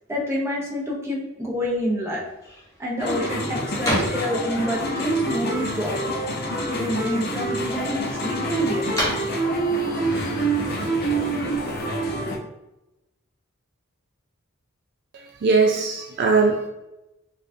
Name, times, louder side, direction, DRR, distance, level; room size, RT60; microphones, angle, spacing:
voice 1, 0.1-2.2 2.8-6.1 6.7-8.9, equal, 15° right, -3 dB, 0.7 m, -27 dB
sound 1, 2.2-11.4, equal, 15° left, 1.0 m, -35 dB
sound 2, 3.0-12.4, right 2 dB, 50° left, 0.6 m, -26 dB
voice 2, 15.1-16.7, right 4 dB, 50° right, 1 dB, 0.3 m, -20 dB
4.4 x 2.4 x 2.6 m, 0.94 s
head